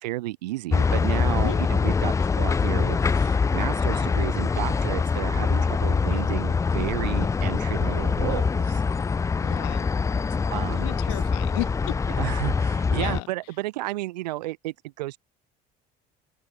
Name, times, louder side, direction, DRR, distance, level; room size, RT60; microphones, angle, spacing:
voice 1, 0.0-8.8 10.5-11.2 12.1-15.2, right 18 dB, 90° right, 2.3 m, -32 dB
sound 1, 0.7-13.2, left 5 dB, 15° left, 0.3 m, -24 dB
voice 2, 9.4-9.9 10.8-11.9 12.9-13.3, left 39 dB, 80° left, 3.0 m, -33 dB
open air
hypercardioid pair, 75°, 21 cm